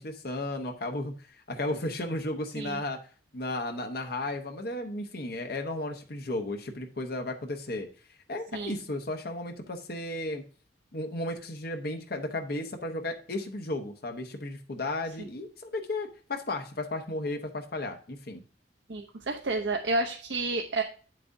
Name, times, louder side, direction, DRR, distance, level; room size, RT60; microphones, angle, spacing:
voice 1, 0.0-3.0 3.3-7.9 8.3-10.4 10.9-18.4, left 2 dB, 60° left, 4 dB, 1.0 m, -34 dB
voice 2, 18.9-20.8, right 2 dB, 75° right, 3 dB, 0.8 m, -30 dB
8.6 x 7.5 x 2.7 m, 0.39 s
head